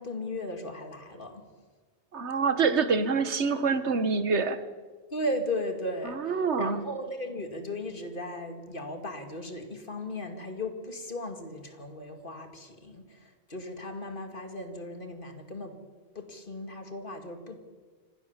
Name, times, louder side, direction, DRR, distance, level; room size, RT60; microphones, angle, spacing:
voice 1, 0.0-1.4 5.1-15.8 16.1-17.6, left 1 dB, 50° left, 6 dB, 2.5 m, -36 dB
voice 2, 2.1-4.6 6.0-6.8, right 5 dB, 90° right, 12 dB, 1.6 m, -26 dB
25.0 x 17.0 x 7.4 m, 1.4 s
omnidirectional pair, 1.1 m